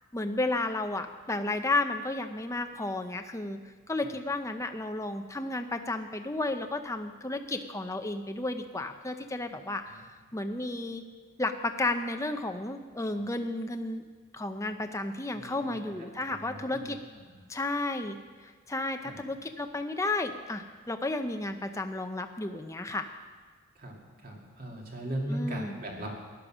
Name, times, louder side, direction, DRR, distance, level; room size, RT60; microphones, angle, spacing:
voice 1, 0.1-3.6 3.9-9.8 10.3-11.0 11.4-14.0 14.3-17.0 17.5-18.2 18.7-23.1 25.3-25.7, left 2 dB, 15° left, 6 dB, 0.6 m, -32 dB
voice 2, 15.3-15.9 16.3-16.9 19.0-19.2 23.8-24.0 24.2-26.1, right 1 dB, 40° right, 0 dB, 2.4 m, -38 dB
15.0 x 11.5 x 6.2 m, 1.5 s
head